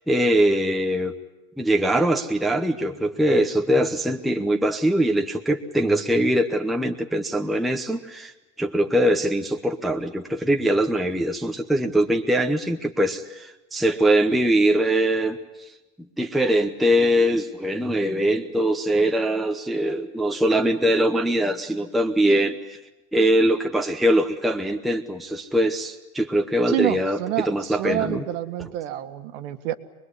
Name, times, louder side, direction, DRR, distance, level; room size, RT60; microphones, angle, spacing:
voice 1, 0.1-1.1 1.6-8.3 8.6-15.4 16.2-22.8 23.1-28.2, right 1 dB, ahead, 3 dB, 0.9 m, -22 dB
voice 2, 26.7-29.7, right 13 dB, 55° right, 9 dB, 1.8 m, -28 dB
25.0 x 21.5 x 9.7 m, 1.0 s
supercardioid pair, 150°, 43 cm